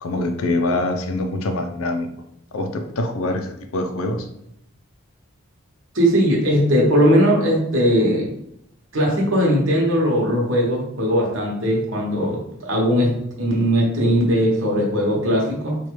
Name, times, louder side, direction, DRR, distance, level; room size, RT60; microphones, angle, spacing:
voice 1, 0.0-2.1 2.5-4.3, left 2 dB, 80° left, 6 dB, 0.5 m, -24 dB
voice 2, 5.9-8.3 8.9-15.8, equal, 65° right, -2 dB, 1.1 m, -19 dB
4.5 x 2.3 x 3.1 m, 0.74 s
head